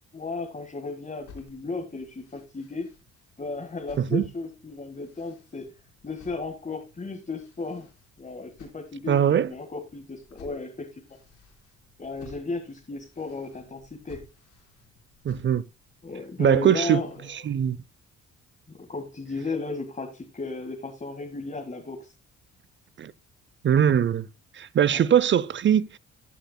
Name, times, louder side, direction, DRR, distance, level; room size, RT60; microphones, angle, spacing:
voice 1, 0.1-2.9 3.4-5.7 6.0-7.9 8.2-11.2 12.0-14.3 16.0-17.1 18.8-22.1 24.9-25.0, left 3 dB, 25° left, 1.8 m, -35 dB
sound 1, 1.2-17.4, left 4 dB, 80° left, 4.5 m, -56 dB
voice 2, 9.1-9.5 15.2-15.6 16.4-17.0 17.3-17.8 23.0-23.1 23.6-24.3 24.5-26.0, right 9 dB, 40° right, 0.6 m, -21 dB
14.5 x 8.0 x 2.2 m
cardioid pair, 90°, 30 cm